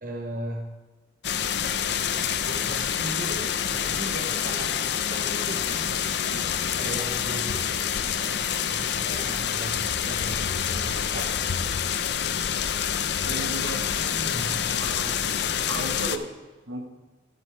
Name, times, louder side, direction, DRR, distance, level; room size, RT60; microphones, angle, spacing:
voice 1, 0.0-0.7 2.5-6.5 6.8-8.0 8.7-11.3 14.2-14.7, right 1 dB, 45° right, 3 dB, 0.8 m, -37 dB
sound 1, 1.2-16.2, left 8 dB, 60° left, 0.5 m, -27 dB
voice 2, 13.2-14.0 14.8-15.1 15.7-16.3 16.7-16.8, right 2 dB, 80° right, 4 dB, 1.4 m, -34 dB
11.5 x 10.5 x 3.3 m, 1.2 s
head